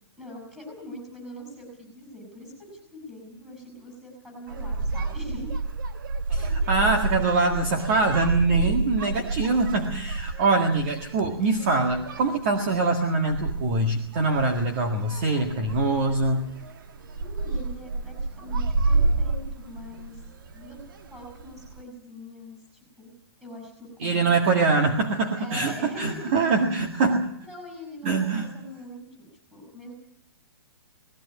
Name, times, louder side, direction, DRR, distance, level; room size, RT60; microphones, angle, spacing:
voice 1, 0.2-5.6 6.4-6.6 8.5-8.8 17.2-20.2 20.5-20.8 21.1-22.6 23.0-23.1 23.4-24.9 25.4-26.3 27.4-29.9, left 1 dB, 5° right, 1 dB, 7.1 m, -42 dB
sound 1, 4.5-21.8, right 3 dB, 55° right, 1.6 m, -30 dB
voice 2, 6.3-16.5 24.0-27.3 28.0-28.5, right 3 dB, 30° right, 4 dB, 1.8 m, -24 dB
19.5 x 17.0 x 9.5 m, 0.70 s
hypercardioid pair, 175°, 13 cm